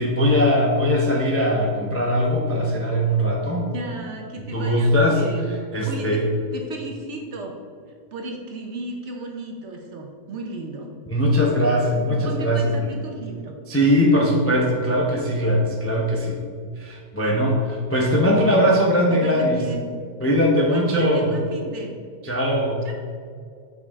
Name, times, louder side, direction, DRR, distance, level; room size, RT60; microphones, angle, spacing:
voice 1, 0.0-3.7 4.5-5.2 5.5-6.3 11.1-12.9 13.7-16.4 16.8-19.6 20.2-21.3 22.2-22.8, equal, 20° left, -2 dB, 0.4 m, -20 dB
voice 2, 3.6-6.2 6.5-7.6 8.1-10.9 12.1-13.5 19.1-19.8 20.7-21.9 22.8-22.9, right 2 dB, 55° right, 1 dB, 1.0 m, -34 dB
7.2 x 5.3 x 3.6 m, 2.2 s
omnidirectional pair, 1.6 m